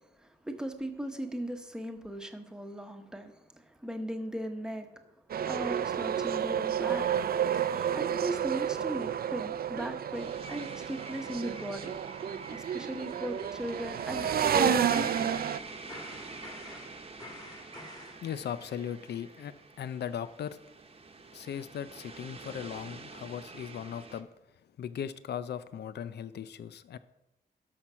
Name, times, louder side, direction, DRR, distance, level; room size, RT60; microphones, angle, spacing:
voice 1, 0.0-4.9 5.5-7.3 7.7-11.9 12.5-15.3, equal, 5° right, 5 dB, 1.1 m, -38 dB
sound 1, 5.3-15.6, right 9 dB, 60° right, 0.5 m, -31 dB
sound 2, 7.5-8.7 9.1-9.2 9.5-9.7 10.0-10.1 10.5-10.7 11.0-11.2 11.4-11.6 11.9-15.6 15.9-18.2, left 1 dB, 25° left, 2.4 m, -50 dB
sound 3, 10.1-24.2, right 3 dB, 35° right, 1.0 m, -47 dB
voice 2, 18.2-20.6 21.3-24.3 24.8-27.0, left 9 dB, 70° left, 14 dB, 0.5 m, -38 dB
12.0 x 5.9 x 5.6 m, 0.93 s
wide cardioid pair, 125°, 18 cm